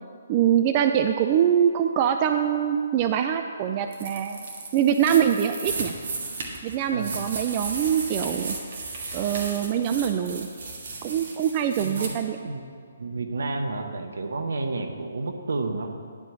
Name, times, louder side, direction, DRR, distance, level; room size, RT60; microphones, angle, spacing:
voice 1, 0.3-4.4 4.7-5.9 6.6-8.6 9.1-10.5 11.0-12.4, right 9 dB, 30° right, 7 dB, 0.3 m, -23 dB
sound 1, 3.9-12.1, right 3 dB, 50° right, 1.5 m, -35 dB
voice 2, 6.9-7.3 11.8-12.6 13.0-16.0, right 3 dB, 65° right, 5 dB, 0.9 m, -31 dB
9.8 x 4.8 x 6.8 m, 2.3 s
figure-of-eight pair, 135°, 0 cm